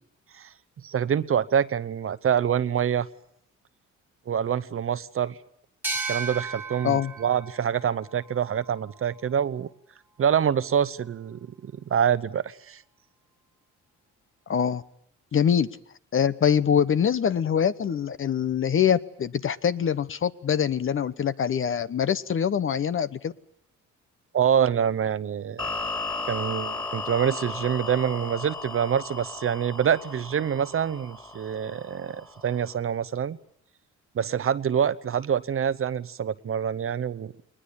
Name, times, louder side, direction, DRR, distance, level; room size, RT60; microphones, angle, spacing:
voice 1, 0.8-3.1 4.3-5.4 6.1-9.7 10.2-12.8 24.3-25.9 26.3-33.4 34.1-37.4, right 8 dB, 45° right, 16 dB, 0.9 m, -26 dB
sound 1, 5.8-9.2, right 3 dB, 5° right, 2.0 m, -35 dB
voice 2, 14.5-14.8 15.3-15.7 16.1-23.3, left 8 dB, 45° left, 15 dB, 0.9 m, -24 dB
sound 2, 25.6-32.8, left 3 dB, 15° left, 3.5 m, -35 dB
21.0 x 20.0 x 8.7 m, 0.70 s
cardioid pair, 90°, 30 cm